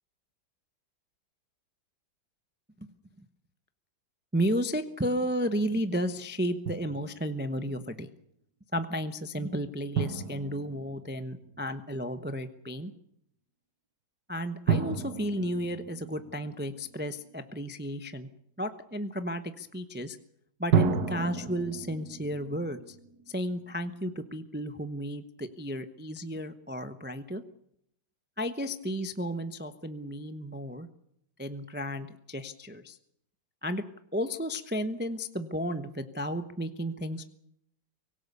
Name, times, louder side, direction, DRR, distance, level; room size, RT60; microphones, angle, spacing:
voice 1, 4.3-8.1 8.7-12.9 14.3-18.3 18.6-20.2 20.6-22.9 23.3-27.4 28.4-30.9 31.4-33.0 33.6-33.8 34.1-37.2, equal, 10° right, 9 dB, 0.6 m, -33 dB
Drum, 6.7-7.4 10.0-11.7 14.7-17.2 20.7-23.9, right 6 dB, 55° right, 1.9 m, -32 dB
24.5 x 17.5 x 6.9 m, 0.72 s
omnidirectional pair, 2.1 m